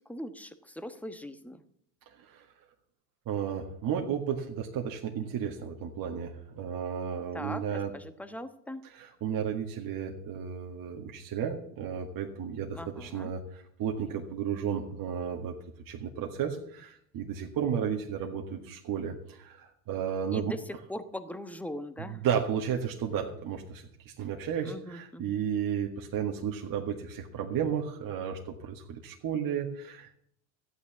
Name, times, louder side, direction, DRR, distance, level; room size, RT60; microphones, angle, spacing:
voice 1, 0.1-1.6 7.3-8.8 12.7-13.3 20.3-20.6 20.9-22.2 24.6-25.2, left 1 dB, 5° left, 9 dB, 1.2 m, -40 dB
voice 2, 3.3-7.9 8.9-15.6 15.9-20.5 22.0-30.2, right 8 dB, 45° right, 1 dB, 1.8 m, -33 dB
13.5 x 9.0 x 7.2 m, 0.67 s
hypercardioid pair, 95°, 48 cm